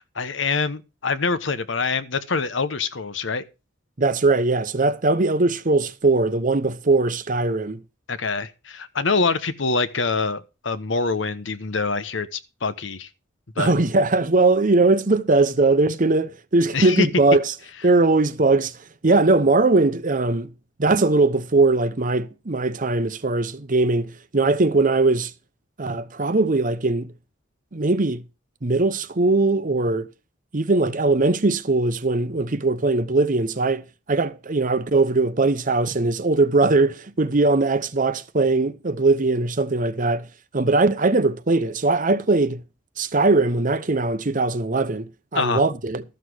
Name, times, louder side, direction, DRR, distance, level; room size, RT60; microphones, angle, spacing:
voice 1, 0.1-3.4 8.1-13.1 13.6-13.7 16.7-17.1 45.3-45.6, left 4 dB, 70° left, 1.0 m, -25 dB
voice 2, 4.0-7.8 13.6-17.5 17.8-18.8 19.0-20.5 20.8-25.3 25.8-27.1 27.7-28.2 28.6-30.1 30.5-33.8 34.1-40.3 40.5-42.6 43.0-46.0, right 3 dB, 45° right, 0.9 m, -20 dB
13.0 x 6.5 x 6.2 m
head